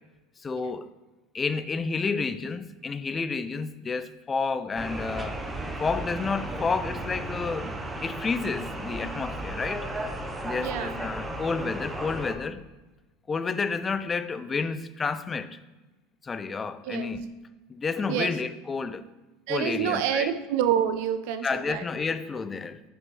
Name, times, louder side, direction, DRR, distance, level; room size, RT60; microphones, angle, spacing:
voice 1, 0.4-0.9 1.3-5.4 5.8-7.8 8.0-9.9 10.4-12.7 13.3-15.6 16.2-17.3 17.7-19.1 19.5-20.3 21.4-22.8, left 4 dB, 20° left, 0.4 m, -30 dB
sound 1, 4.8-12.4, right 1 dB, 15° right, 0.7 m, -34 dB
voice 2, 10.6-11.0 16.9-17.1 18.1-18.3 19.5-21.8, right 9 dB, 65° right, 0.5 m, -27 dB
5.9 x 5.2 x 3.2 m
supercardioid pair, 105°, 0 cm